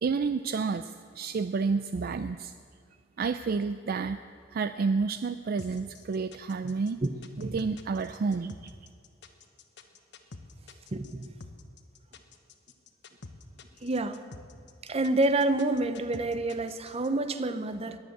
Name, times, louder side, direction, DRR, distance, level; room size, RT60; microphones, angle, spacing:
voice 1, 0.0-2.5 3.2-4.2 4.5-7.0 7.4-8.7, right 4 dB, 50° right, 11 dB, 0.4 m, -30 dB
sound 1, 5.6-17.1, left 3 dB, 65° left, 1.1 m, -48 dB
voice 2, 10.9-11.3 13.8-14.2 14.8-18.0, right 2 dB, 30° right, 11 dB, 0.8 m, -28 dB
20.5 x 7.9 x 7.8 m, 2.1 s
head